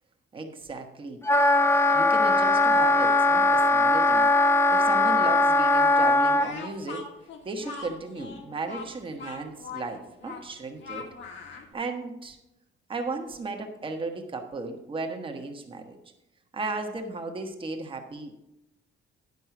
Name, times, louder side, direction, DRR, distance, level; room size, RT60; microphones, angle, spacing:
voice 1, 0.3-1.2 1.9-7.0 7.4-11.0 11.7-12.4 12.9-16.0 16.5-18.3, right 3 dB, 25° right, 4 dB, 1.2 m, -35 dB
Wind instrument woodwind instrument, 1.2-6.5, left 2 dB, 10° left, 0.5 m, -20 dB
Speech, 6.3-11.7, left 5 dB, 65° left, 1.6 m, -41 dB
10.5 x 5.4 x 5.8 m, 0.90 s
cardioid pair, 150°, 20 cm